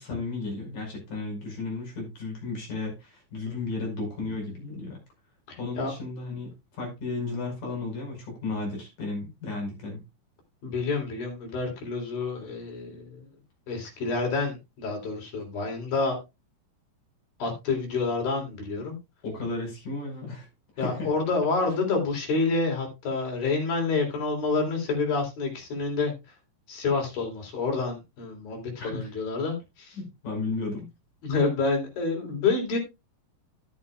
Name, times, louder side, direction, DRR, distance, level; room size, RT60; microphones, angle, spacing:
voice 1, 0.0-5.0 5.6-6.5 6.8-10.0 19.2-20.5 20.8-21.1 28.8-29.1 30.0-30.9, left 3 dB, 65° left, 7.0 m, -34 dB
voice 2, 5.5-5.9 10.6-13.3 13.7-16.2 17.4-19.0 20.8-26.1 26.7-30.0 31.2-32.8, left 4 dB, 85° left, 5.4 m, -28 dB
12.0 x 11.0 x 2.3 m
omnidirectional pair, 4.0 m